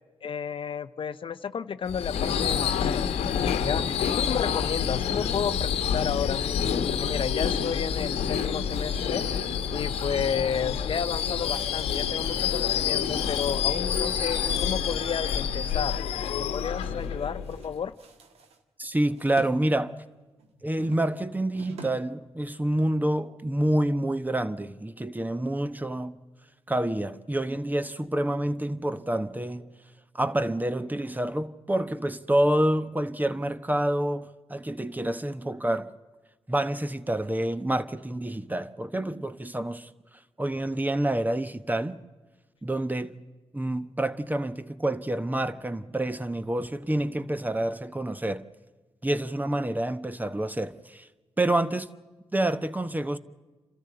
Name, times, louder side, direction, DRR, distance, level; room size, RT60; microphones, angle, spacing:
voice 1, 0.2-3.0 3.2-9.3 9.7-16.0 16.4-17.9, left 7 dB, 60° left, 0.7 m, -32 dB
Subway metro underground / Screech, 1.9-17.8, left 8 dB, 85° left, 1.1 m, -28 dB
sound 1, 7.4-14.0 14.4-14.7 14.9-17.2 17.4-19.6 19.9-22.2 22.5-22.7 23.1-23.2, right 4 dB, 85° right, 1.7 m, -50 dB
voice 2, 18.8-19.9 20.6-26.1 26.7-29.7 30.1-35.9 36.5-39.9 40.4-42.0 42.6-43.1 43.5-48.4 49.0-51.1 51.4-51.9 52.3-53.2, right 1 dB, 15° right, 1.1 m, -28 dB
28.5 x 13.5 x 7.9 m
supercardioid pair, 50°, 10 cm